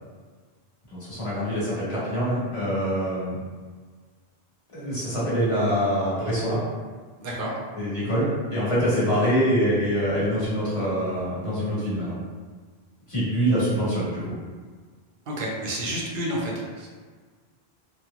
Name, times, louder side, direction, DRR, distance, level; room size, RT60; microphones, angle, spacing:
voice 1, 0.9-3.4 4.7-6.6 7.7-12.1 13.1-14.3, equal, 30° left, -11 dB, 1.3 m, -25 dB
voice 2, 7.2-7.5 15.3-16.9, right 1 dB, 65° right, -3 dB, 0.8 m, -30 dB
2.9 x 2.4 x 2.4 m, 1.5 s
omnidirectional pair, 1.0 m